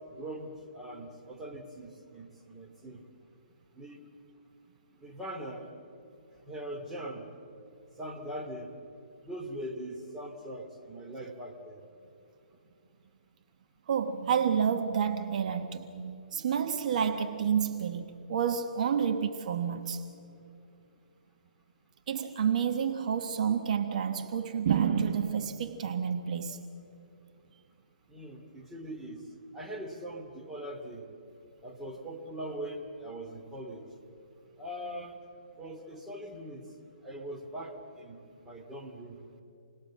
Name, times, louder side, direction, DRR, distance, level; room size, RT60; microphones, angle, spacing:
voice 1, 0.1-3.0 3.7-4.0 5.0-5.7 6.5-7.3 8.0-8.8 9.2-11.8 28.1-29.3 29.5-31.0 31.6-33.8 34.6-35.2 35.6-36.7 37.0-39.2, right 1 dB, 5° right, 2.4 m, -41 dB
voice 2, 13.9-20.0 22.1-26.6, right 7 dB, 55° right, 1.4 m, -29 dB
29.0 x 20.0 x 7.5 m
hypercardioid pair, 140°, 5 cm